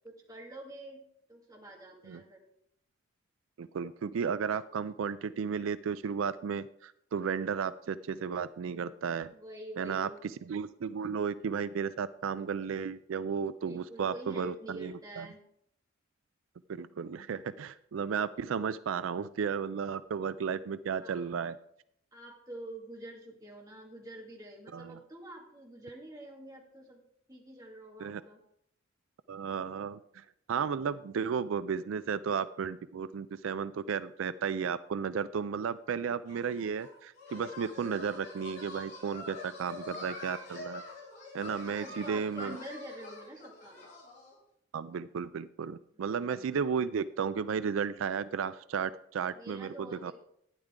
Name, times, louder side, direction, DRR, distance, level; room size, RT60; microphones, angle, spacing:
voice 1, 0.0-1.0 1.3-2.4 9.3-10.2 13.6-15.4 21.0-21.2 22.1-27.0 27.3-28.4 39.8-40.2 41.6-43.9 45.9-46.0 49.3-50.1, right 1 dB, 20° right, -1 dB, 2.2 m, -47 dB
voice 2, 3.6-9.3 9.8-15.3 16.7-21.6 24.7-25.0 28.0-28.2 29.3-40.8 41.3-42.6 44.7-50.1, right 6 dB, 85° right, 15 dB, 0.4 m, -34 dB
sound 1, 36.3-44.4, left 2 dB, 55° left, 5.5 m, -45 dB
12.0 x 9.9 x 3.7 m, 0.73 s
head